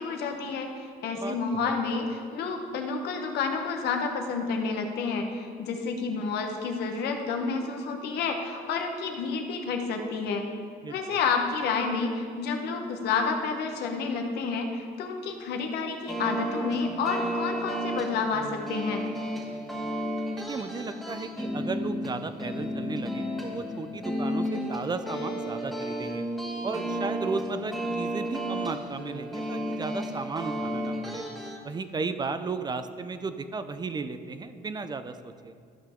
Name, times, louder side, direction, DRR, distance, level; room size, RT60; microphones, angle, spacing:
voice 1, 0.0-10.5 10.9-19.0, left 5 dB, 75° left, 4 dB, 1.1 m, -30 dB
sound 1, 16.1-31.6, equal, ahead, 1.5 m, -33 dB
voice 2, 20.4-26.2 26.6-31.2 31.6-35.5, right 4 dB, 25° right, 10 dB, 0.4 m, -34 dB
13.0 x 5.6 x 3.7 m, 2.2 s
cardioid pair, 110°, 17 cm